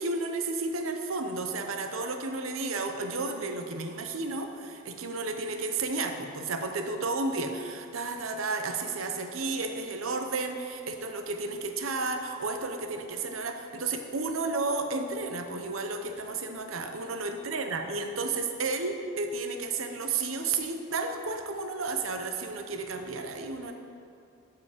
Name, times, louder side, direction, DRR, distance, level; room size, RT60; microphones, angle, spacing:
voice 1, 0.0-23.7, right 3 dB, 80° right, 6 dB, 0.8 m, -32 dB
14.0 x 4.8 x 5.0 m, 2.5 s
head